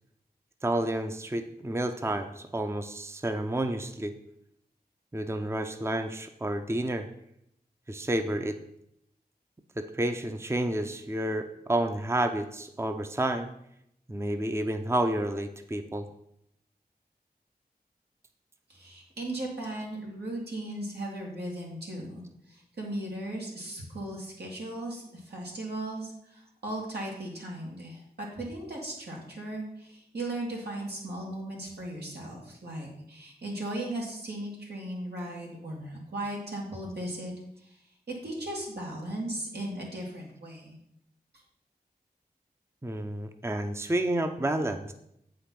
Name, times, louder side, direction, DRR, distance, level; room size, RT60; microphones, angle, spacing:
voice 1, 0.6-4.1 5.1-7.1 7.9-8.6 9.8-13.5 14.1-16.1 42.8-44.9, right 1 dB, 15° right, 7 dB, 0.6 m, -30 dB
voice 2, 18.7-37.3 37.6-37.8 38.1-40.8, right 1 dB, 85° right, -3 dB, 2.6 m, -37 dB
8.1 x 5.1 x 5.9 m, 0.77 s
wide cardioid pair, 60°, 17 cm